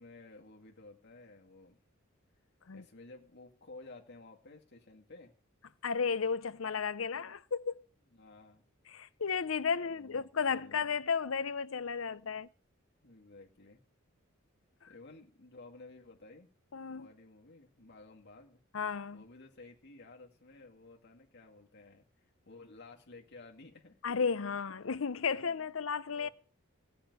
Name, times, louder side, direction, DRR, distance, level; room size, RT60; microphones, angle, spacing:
voice 1, 0.0-1.8 2.7-5.3 8.1-8.7 9.8-10.9 13.0-13.8 14.9-16.5 16.9-18.6 19.1-24.2 25.5-25.6 26.1-26.3, left 3 dB, 55° left, 2.3 m, -54 dB
voice 2, 5.8-7.7 8.9-12.5 14.8-14.9 16.7-17.1 18.7-19.2 24.0-26.3, left 5 dB, 75° left, 0.7 m, -33 dB
16.5 x 6.6 x 9.6 m
head